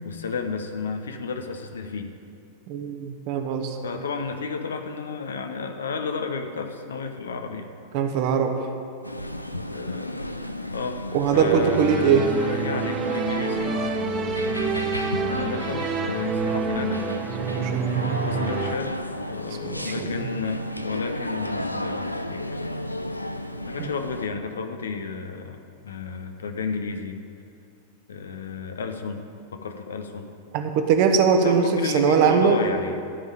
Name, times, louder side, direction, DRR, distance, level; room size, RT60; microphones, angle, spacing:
voice 1, 0.0-2.1 3.8-7.7 9.7-10.2 10.7-11.0 11.3-13.8 15.3-17.1 18.2-18.9 19.3-22.4 23.6-27.2 28.1-30.3 31.4-33.0, left 4 dB, 70° left, 6 dB, 0.9 m, -32 dB
voice 2, 2.7-3.8 7.9-8.5 11.1-12.2 17.4-18.4 19.7-20.1 23.8-23.9 30.5-32.6, right 6 dB, 45° right, 5 dB, 1.1 m, -21 dB
sound 1, 9.0-24.3, left 1 dB, 85° left, 0.5 m, -33 dB
sound 2, 11.3-18.8, right 5 dB, 25° right, 0.7 m, -28 dB
12.5 x 5.5 x 9.1 m, 2.4 s
figure-of-eight pair, 90°, 0 cm